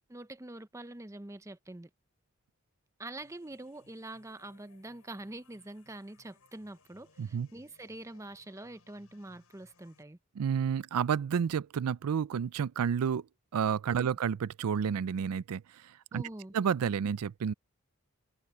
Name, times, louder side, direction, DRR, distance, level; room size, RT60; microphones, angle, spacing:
voice 1, 0.1-1.9 3.0-10.2 14.0-14.1 16.1-16.5, right 1 dB, 15° right, 0.6 m, -45 dB
sound 1, 3.2-10.0, left 3 dB, 75° left, 5.7 m, -65 dB
voice 2, 10.4-13.3 13.5-16.2 16.5-17.5, right 7 dB, 85° right, 0.4 m, -30 dB
head